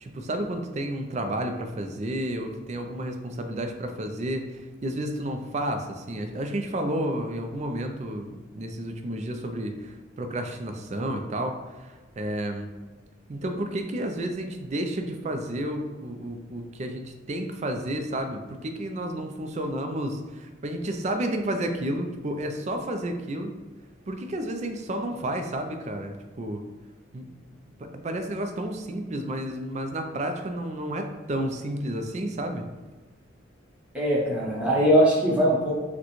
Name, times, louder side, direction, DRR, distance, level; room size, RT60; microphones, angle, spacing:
voice 1, 0.0-12.7 13.3-23.5 24.1-26.6 27.1-27.3 27.8-32.6, right 1 dB, 35° right, 5 dB, 0.4 m, -31 dB
voice 2, 33.9-35.7, equal, 5° right, -6 dB, 0.9 m, -21 dB
6.1 x 2.2 x 3.0 m, 1.2 s
head